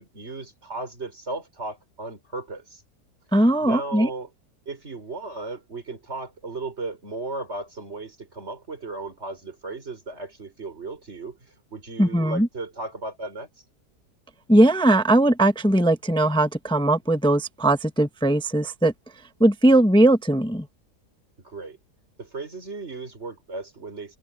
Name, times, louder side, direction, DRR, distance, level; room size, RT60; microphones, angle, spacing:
voice 1, 0.0-2.8 3.6-4.3 4.7-11.4 11.7-13.5 21.4-21.8 22.2-24.2, right 3 dB, 40° right, 5.3 m, -35 dB
voice 2, 3.3-4.1 12.0-12.5 14.5-18.9 19.4-20.7, right 1 dB, 5° left, 0.6 m, -19 dB
open air
omnidirectional pair, 1.7 m